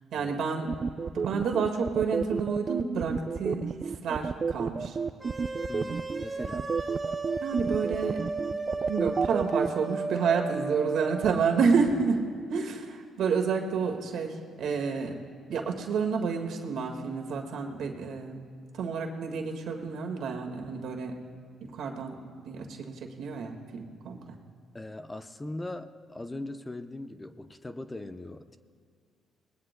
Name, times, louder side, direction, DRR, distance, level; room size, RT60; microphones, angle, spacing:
voice 1, 0.1-0.7 1.1-5.0 6.5-6.6 7.4-8.2 8.9-12.2 12.5-15.2 15.5-18.4 18.7-21.1 21.7-24.4, right 5 dB, 75° right, 3 dB, 1.7 m, -29 dB
sound 1, 0.7-9.7, right 5 dB, 40° right, 0.4 m, -30 dB
sound 2, 5.2-11.4, right 3 dB, 20° right, 2.5 m, -35 dB
voice 2, 5.7-6.8 24.7-28.6, left 2 dB, 15° left, 8 dB, 0.6 m, -40 dB
26.0 x 19.5 x 2.2 m, 2.1 s
cardioid pair, 90°, 0 cm